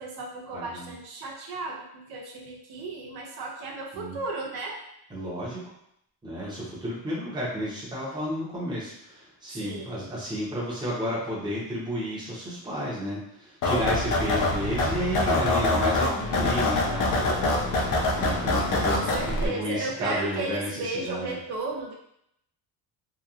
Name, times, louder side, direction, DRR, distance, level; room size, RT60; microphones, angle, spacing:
voice 1, 0.0-4.8 9.6-10.1 18.9-21.9, right 3 dB, 70° right, 0 dB, 0.6 m, -34 dB
voice 2, 0.5-0.9 3.9-4.2 5.1-5.6 6.2-17.5 18.2-19.0 19.4-21.4, equal, 10° right, -7 dB, 0.7 m, -32 dB
sound 1, 13.6-19.5, left 2 dB, 55° left, 0.5 m, -25 dB
2.8 x 2.2 x 2.4 m, 0.75 s
cardioid pair, 175°, 40 cm